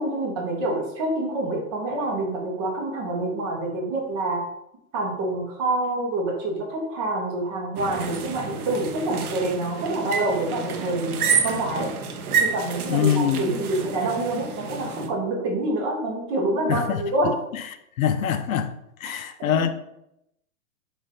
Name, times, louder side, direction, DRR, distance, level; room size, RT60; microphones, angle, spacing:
voice 1, 0.0-4.5 4.9-11.2 11.4-11.9 12.4-17.3 19.0-19.7, right 2 dB, 25° right, 0.8 m, -27 dB
sound 1, 7.8-15.1, right 6 dB, 80° right, 0.8 m, -29 dB
voice 2, 12.9-13.5 16.7-17.0 18.0-18.7 19.0-19.7, left 8 dB, 70° left, 0.6 m, -23 dB
5.5 x 2.6 x 3.7 m
hypercardioid pair, 155°, 44 cm